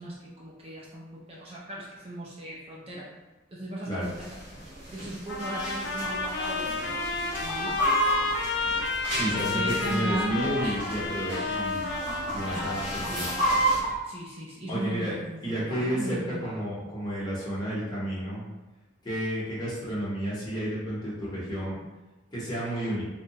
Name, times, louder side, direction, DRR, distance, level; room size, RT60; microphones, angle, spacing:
voice 1, 0.0-3.1 3.5-4.6 4.9-7.8 9.3-10.8 11.3-11.7 12.4-13.4 14.0-16.6, right 1 dB, 30° right, -5 dB, 0.4 m, -37 dB
sound 1, 4.0-13.8, right 1 dB, 70° right, 1.3 m, -40 dB
sound 2, 5.3-13.7, left 3 dB, 65° left, 0.4 m, -31 dB
Chicken rooster, 6.0-6.5 6.8-6.9 7.3-9.6 10.3-11.0 11.3-11.6 11.9-12.4 12.8-13.9, right 1 dB, 10° right, 1.1 m, -27 dB
voice 2, 9.1-11.8 12.3-12.8 13.1-13.3 14.7-15.1 15.4-18.4 19.0-21.8 22.3-23.0, equal, 20° left, -8 dB, 0.8 m, -31 dB
2.7 x 2.1 x 2.8 m, 1.1 s
head